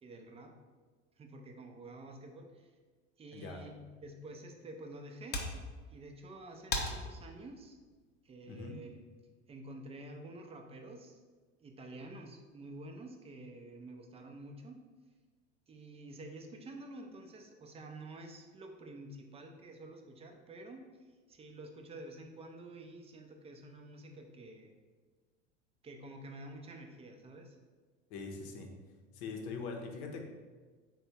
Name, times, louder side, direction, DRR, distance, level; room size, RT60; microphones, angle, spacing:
voice 1, 0.0-0.5 1.2-2.7 3.2-5.4 5.9-7.8 8.2-9.0 9.5-11.2 11.6-14.8 15.7-24.7 25.8-27.6, right 2 dB, 15° right, 3 dB, 0.4 m, -49 dB
voice 2, 3.3-3.6 8.5-8.8 28.1-28.8 29.1-30.2, left 4 dB, 65° left, 3 dB, 0.8 m, -42 dB
sound 1, 4.2-9.2, left 2 dB, 25° left, 0.6 m, -43 dB
3.5 x 2.2 x 4.1 m, 1.4 s
hypercardioid pair, 85°, 37 cm